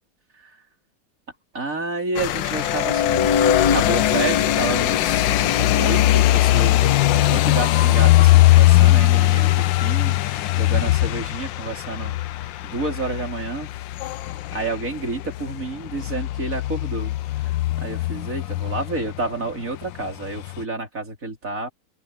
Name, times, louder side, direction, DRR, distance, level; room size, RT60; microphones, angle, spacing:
voice 1, 1.5-3.3 3.7-5.3 5.8-7.0 7.3-12.2 12.6-13.7 14.5-17.1 17.4-17.5 17.8-21.7, right 3 dB, 45° right, 4.5 m, -29 dB
sound 1, 2.2-19.4 19.8-20.6, left 16 dB, 90° left, 1.4 m, -20 dB
sound 2, 2.5-8.8, left 7 dB, 55° left, 1.6 m, -25 dB
open air
omnidirectional pair, 2.0 m